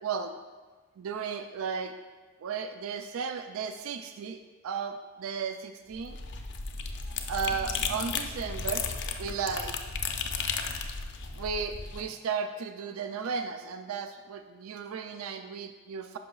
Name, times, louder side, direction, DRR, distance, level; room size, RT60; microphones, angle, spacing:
voice 1, 0.0-0.4 1.0-1.9 2.4-6.2 7.1-8.9 9.2-9.8 11.3-16.2, right 6 dB, 75° right, 7 dB, 0.4 m, -35 dB
sound 1, 5.9-12.0, left 5 dB, 55° left, 0.5 m, -34 dB
10.5 x 5.6 x 2.3 m, 1.4 s
head